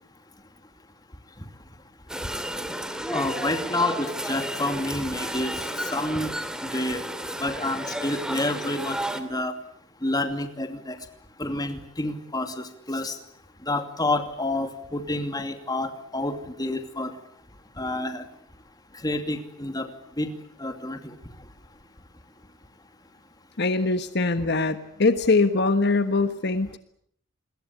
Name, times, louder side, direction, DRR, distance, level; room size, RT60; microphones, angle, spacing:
sound 1, 2.1-9.2, equal, 5° right, 2.4 m, -32 dB
voice 1, 3.1-6.3 6.6-7.0 7.4-9.6 10.0-11.0 11.4-13.2 13.6-17.2 17.8-18.3 18.9-19.9 20.2-20.3 20.6-21.2, left 2 dB, 20° left, 7 dB, 2.6 m, -29 dB
voice 2, 23.6-26.8, left 3 dB, 55° left, 10 dB, 1.4 m, -22 dB
28.0 x 21.5 x 8.4 m, 0.66 s
head